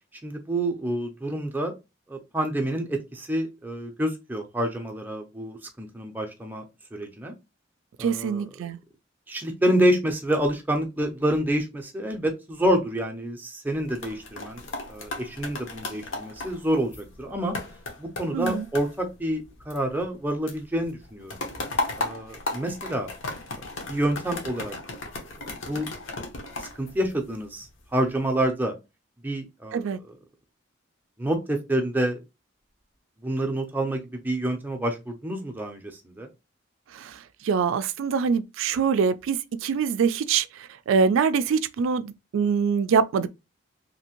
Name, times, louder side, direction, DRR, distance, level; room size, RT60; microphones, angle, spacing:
voice 1, 0.2-1.7 2.1-6.6 6.9-7.3 8.0-8.4 9.3-14.6 14.9-17.5 18.0-21.4 22.0-23.1 23.9-24.8 25.6-25.9 26.6-28.7 29.2-29.9 31.2-32.2 33.2-36.3, right 1 dB, 10° right, 0.5 m, -28 dB
voice 2, 8.0-8.8 18.3-18.7 29.7-30.0 36.9-40.5 40.9-43.3, right 6 dB, 80° right, 0.3 m, -24 dB
sound 1, 13.7-20.2 20.5-27.7 28.2-28.5, left 2 dB, 70° left, 0.9 m, -36 dB
2.7 x 2.6 x 2.9 m
head